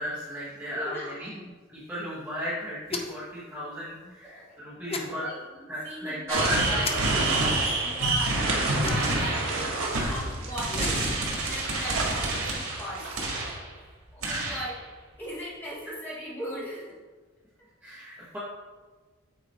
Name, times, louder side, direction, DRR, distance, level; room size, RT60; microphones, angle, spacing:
voice 1, 0.0-1.4 1.7-5.3 5.7-7.0 7.3-7.8 14.2-14.6 17.8-18.4, equal, 10° right, -10 dB, 1.4 m, -35 dB
voice 2, 0.7-1.4 4.0-6.9 7.8-11.0 11.5-13.3 14.1-14.8 15.2-17.0, equal, 10° left, -9 dB, 2.2 m, -38 dB
sound 1, 2.9-3.3 4.9-5.1 6.8-7.0 8.8-9.3 10.6-11.1, left 4 dB, 30° left, 0.6 m, -34 dB
sound 2, 6.3-13.5, right 3 dB, 70° right, 1.3 m, -33 dB
sound 3, 6.4-13.7 14.2-14.8, right 2 dB, 85° right, 1.8 m, -28 dB
8.2 x 3.8 x 4.4 m, 1.4 s
head